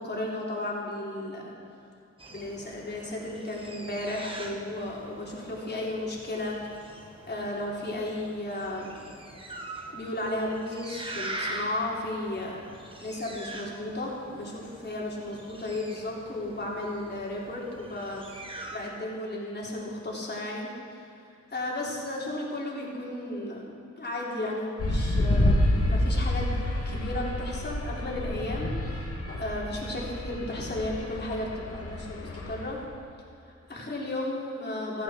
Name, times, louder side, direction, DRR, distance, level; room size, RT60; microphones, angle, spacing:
voice 1, 0.0-1.5 2.3-6.6 7.3-8.9 9.9-12.6 13.0-21.1 21.5-26.5 26.9-32.8 33.4-35.0, left 1 dB, 35° left, -3 dB, 3.5 m, -34 dB
sound 1, 2.2-18.8, right 1 dB, 20° right, 1.6 m, -43 dB
sound 2, 24.8-32.8, left 1 dB, 50° left, 2.5 m, -28 dB
16.0 x 15.0 x 4.4 m, 2.6 s
wide cardioid pair, 110°, 29 cm